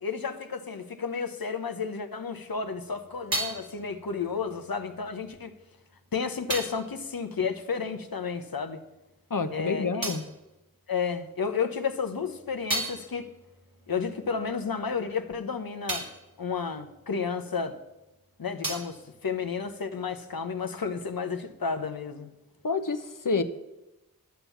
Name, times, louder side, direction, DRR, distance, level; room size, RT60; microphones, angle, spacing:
voice 1, 0.0-5.5 6.1-8.8 9.5-10.1 10.9-13.3 13.9-16.1 16.4-17.8 18.4-22.3, left 5 dB, 90° left, 1.0 m, -32 dB
sound 1, 2.5-8.5 8.7-11.4 11.9-17.9 18.1-20.2, right 2 dB, 75° right, 2.3 m, -39 dB
voice 2, 9.3-10.2 22.6-23.4, left 4 dB, 65° left, 1.0 m, -28 dB
11.5 x 7.4 x 7.1 m
wide cardioid pair, 45°, 34 cm